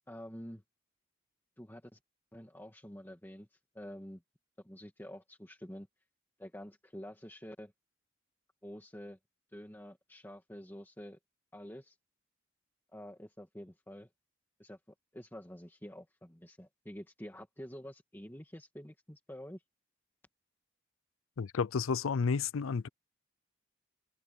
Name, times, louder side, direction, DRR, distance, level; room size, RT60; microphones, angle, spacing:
voice 1, 0.1-0.6 1.6-2.0 2.3-4.2 4.6-5.9 6.4-7.7 8.6-9.2 9.5-11.2 11.5-12.0 12.9-14.1 14.6-14.8 15.1-19.6, equal, 10° left, 2.1 m, -48 dB
voice 2, 21.4-22.9, left 5 dB, 90° left, 0.5 m, -31 dB
head